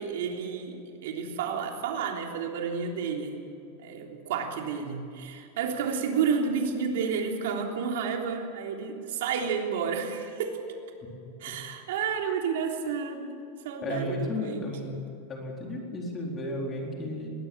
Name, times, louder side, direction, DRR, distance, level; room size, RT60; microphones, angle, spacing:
voice 1, 0.0-3.4 3.8-10.6 11.4-13.4 13.6-14.7, right 6 dB, 75° right, 2 dB, 3.4 m, -31 dB
voice 2, 13.8-14.9 15.3-17.3, left 1 dB, 20° left, 0 dB, 4.2 m, -33 dB
21.5 x 17.0 x 8.7 m, 2.7 s
supercardioid pair, 155°, 0 cm